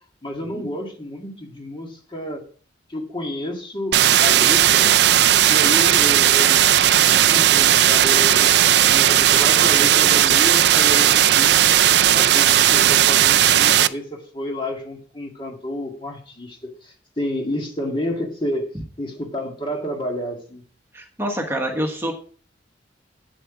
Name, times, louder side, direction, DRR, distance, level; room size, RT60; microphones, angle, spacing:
voice 1, 0.2-2.5 2.9-5.0 5.3-6.6 7.0-11.8 12.1-18.7 19.0-20.6, left 1 dB, 25° left, 2 dB, 1.8 m, -30 dB
sound 1, 3.9-13.9, right 11 dB, 60° right, 0.4 m, -15 dB
voice 2, 20.9-22.1, equal, 15° right, 2 dB, 1.3 m, -26 dB
8.6 x 7.8 x 4.9 m, 0.43 s
head